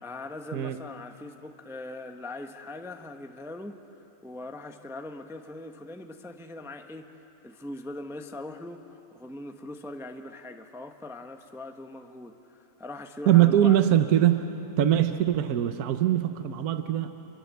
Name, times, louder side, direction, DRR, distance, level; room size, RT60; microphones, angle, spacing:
voice 1, 0.0-3.8 4.2-7.1 7.4-13.8, left 2 dB, ahead, 5 dB, 0.7 m, -41 dB
voice 2, 13.3-14.5 14.8-17.1, right 11 dB, 70° right, 9 dB, 1.3 m, -22 dB
27.0 x 23.0 x 8.2 m, 3.0 s
omnidirectional pair, 1.7 m